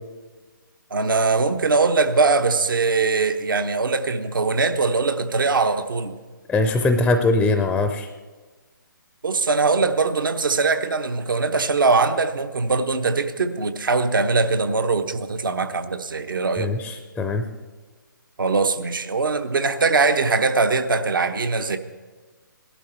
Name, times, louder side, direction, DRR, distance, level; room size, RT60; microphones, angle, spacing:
voice 1, 0.9-6.1 9.2-16.7 18.4-21.8, right 4 dB, 70° right, 8 dB, 1.1 m, -21 dB
voice 2, 6.5-8.1 16.6-17.4, left 2 dB, 5° left, 7 dB, 0.5 m, -21 dB
18.0 x 12.0 x 4.4 m, 1.3 s
figure-of-eight pair, 140°, 11 cm